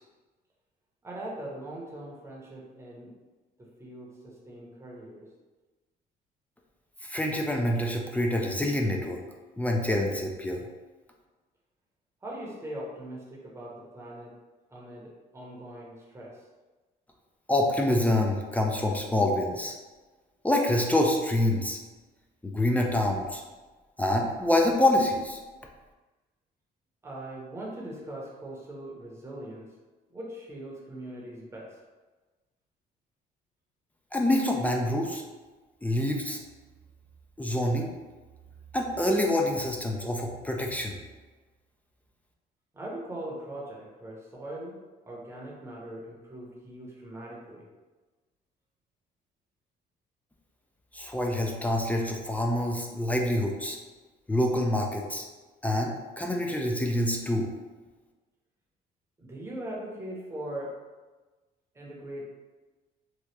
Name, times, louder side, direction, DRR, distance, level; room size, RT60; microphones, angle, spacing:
voice 1, 1.0-3.1 3.6-5.3 12.2-14.3 14.7-16.5 27.0-29.7 30.1-31.8 42.7-44.8 45.1-47.7 59.2-60.8 61.7-62.2, right 1 dB, 15° right, -4 dB, 0.8 m, -41 dB
voice 2, 7.1-9.2 9.6-10.6 17.5-19.8 20.4-21.8 22.4-23.4 24.0-25.4 34.1-35.2 35.8-36.4 37.4-37.9 38.7-41.0 50.9-53.8 54.3-55.2 55.6-57.5, left 1 dB, 10° left, 0 dB, 0.3 m, -26 dB
2.9 x 2.3 x 3.2 m, 1.3 s
cardioid pair, 110°, 17 cm